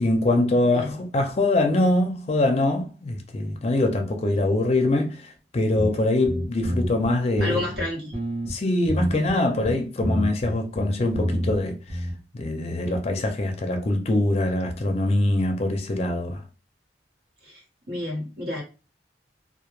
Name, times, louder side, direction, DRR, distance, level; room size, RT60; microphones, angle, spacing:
voice 1, 0.0-7.6 8.5-12.1 12.3-16.4, left 2 dB, 35° left, 0.5 m, -23 dB
sound 1, 5.7-5.9 6.2-7.1 7.4-8.5 8.9-9.3 9.6-11.6 11.9-12.1, equal, 30° right, 0.8 m, -28 dB
voice 2, 7.4-8.1 17.4-17.6 17.9-18.6, left 1 dB, 65° right, 1.1 m, -30 dB
2.1 x 2.1 x 3.0 m
head